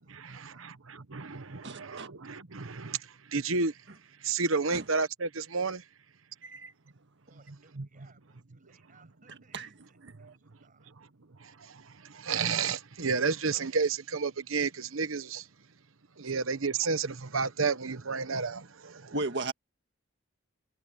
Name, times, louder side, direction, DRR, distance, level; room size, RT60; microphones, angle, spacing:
voice 1, 0.0-0.7 7.3-10.9, right 3 dB, 40° right, 6.8 m, -63 dB
voice 2, 1.1-3.0 3.3-3.7 4.3-5.8 12.3-15.4 16.2-18.6, right 4 dB, 90° right, 1.1 m, -30 dB
voice 3, 1.6-2.1 4.7-4.8 6.4-6.7 9.5-9.7 10.2-10.3 19.1-19.5, right 2 dB, 60° right, 1.8 m, -35 dB
head